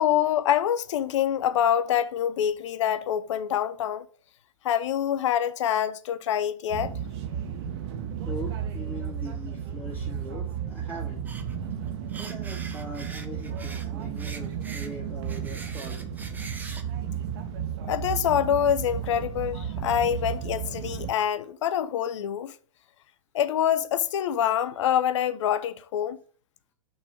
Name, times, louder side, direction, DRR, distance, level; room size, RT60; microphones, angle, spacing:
voice 1, 0.0-4.1 4.6-6.9 17.9-22.5 23.3-26.2, left 10 dB, 65° left, 0.7 m, -25 dB
sound 1, 6.7-21.1, right 8 dB, 50° right, 1.5 m, -33 dB
voice 2, 8.2-11.2 12.2-16.1, left 1 dB, 10° left, 2.4 m, -41 dB
sound 2, 11.3-11.6 11.9-13.9 14.2-16.8, right 4 dB, 10° right, 0.8 m, -43 dB
6.1 x 4.0 x 6.0 m
hypercardioid pair, 120°, 17 cm